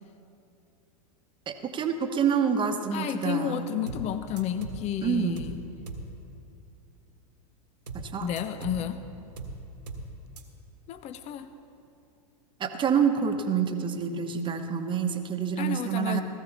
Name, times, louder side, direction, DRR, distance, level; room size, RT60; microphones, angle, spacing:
voice 1, 1.5-3.7 5.0-5.5 7.9-8.3 12.6-16.2, right 7 dB, 25° right, 6 dB, 1.1 m, -27 dB
voice 2, 2.9-5.6 8.2-9.0 10.9-11.5 15.6-16.2, left 9 dB, 35° left, 11 dB, 0.7 m, -31 dB
sound 1, 3.9-4.1 4.4-4.9 5.4-5.6 5.9-6.1 7.9-8.1 8.4-8.9 9.4-9.6 9.9-10.1 10.4-10.5, right 3 dB, 90° right, 1.6 m, -38 dB
16.5 x 14.5 x 4.0 m, 2.6 s
hypercardioid pair, 110°, 20 cm